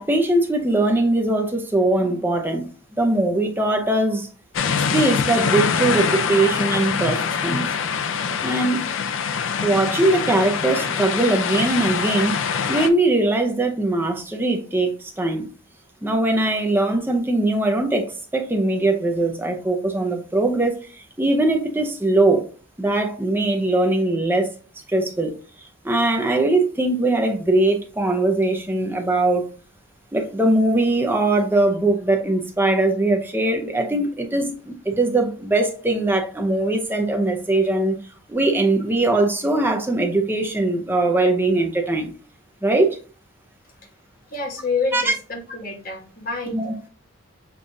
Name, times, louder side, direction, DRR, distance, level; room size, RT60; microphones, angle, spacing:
voice 1, 0.0-2.6 3.0-4.3 4.9-7.6 8.4-8.8 9.6-12.4 12.7-15.5 16.0-22.5 22.8-24.5 24.9-29.5 30.1-38.0 38.3-42.1 42.6-43.0 44.9-45.1 46.5-46.9, right 2 dB, 10° right, 0.6 m, -21 dB
sound 1, 4.5-12.9, left 6 dB, 65° left, 0.4 m, -24 dB
voice 2, 44.3-46.6, left 4 dB, 45° left, 1.2 m, -27 dB
6.8 x 2.5 x 2.6 m
head